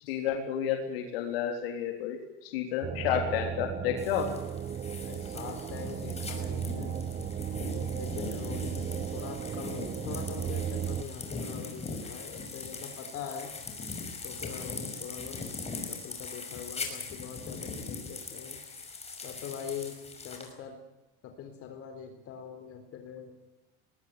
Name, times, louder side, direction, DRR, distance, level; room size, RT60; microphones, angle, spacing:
voice 1, 0.1-4.3, left 9 dB, 85° left, 3 dB, 3.6 m, -31 dB
sound 1, 2.8-11.0, right 8 dB, 25° right, 0.8 m, -35 dB
sound 2, 4.0-20.5, left 4 dB, 20° left, 5.8 m, -40 dB
voice 2, 5.1-6.9 8.0-13.5 14.2-15.5 15.7-18.6 19.2-20.0 20.2-20.8 21.2-23.4, left 7 dB, 50° left, 5 dB, 4.0 m, -43 dB
20.5 x 18.5 x 9.7 m, 1.0 s
supercardioid pair, 115°, 29 cm